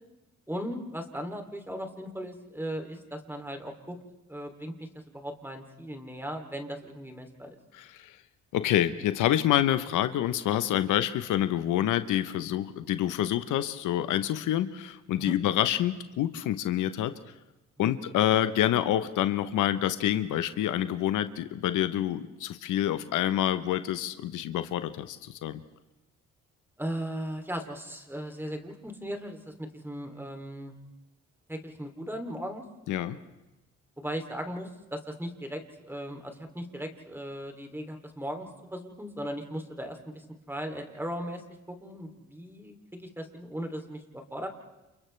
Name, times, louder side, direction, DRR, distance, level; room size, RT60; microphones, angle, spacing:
voice 1, 0.5-4.0 4.3-7.6 15.2-15.3 17.8-17.9 26.8-30.7 31.5-32.6 34.0-41.4 41.7-44.5, equal, 5° right, 4 dB, 3.0 m, -37 dB
voice 2, 7.7-8.2 8.5-17.1 17.8-25.6 32.9-33.2, left 12 dB, 85° left, 11 dB, 1.0 m, -27 dB
29.5 x 28.5 x 3.4 m, 1.0 s
cardioid pair, 90°, 30 cm